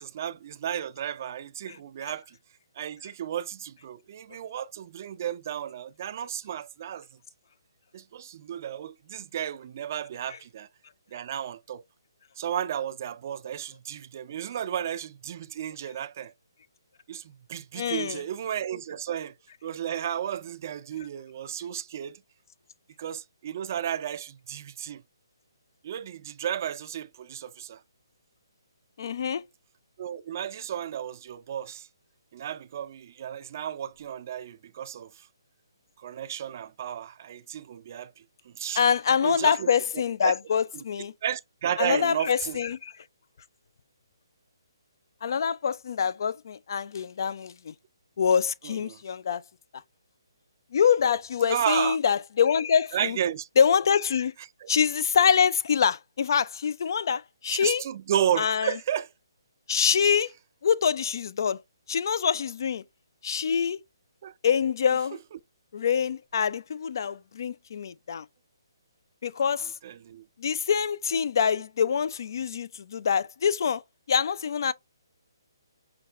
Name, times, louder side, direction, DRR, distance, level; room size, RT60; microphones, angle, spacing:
voice 1, 0.0-2.4 2.8-7.1 7.9-10.7 11.1-11.8 12.4-16.3 17.1-19.3 19.6-22.2 23.0-25.0 25.8-27.8 30.0-31.9 32.3-35.3 36.0-38.1 38.4-38.8 39.2-39.7 40.2-40.3 40.7-40.8 41.2-42.6 48.6-49.0 51.5-52.0 52.9-53.5 54.4-54.7 57.5-59.1 64.2-64.3 69.5-70.3, right 10 dB, 40° right, 0.4 m, -33 dB
voice 2, 17.8-18.2 29.0-29.4 38.8-41.1 41.8-42.9 45.2-47.7 48.2-49.4 50.7-53.2 53.6-54.3 54.7-57.8 58.4-58.7 59.7-60.3 60.6-61.6 61.9-62.8 63.2-63.8 64.4-65.2 65.7-68.2 69.2-69.7 70.4-73.8 74.1-74.7, left 7 dB, 55° left, 0.4 m, -25 dB
5.8 x 2.3 x 2.4 m
hypercardioid pair, 155°, 2 cm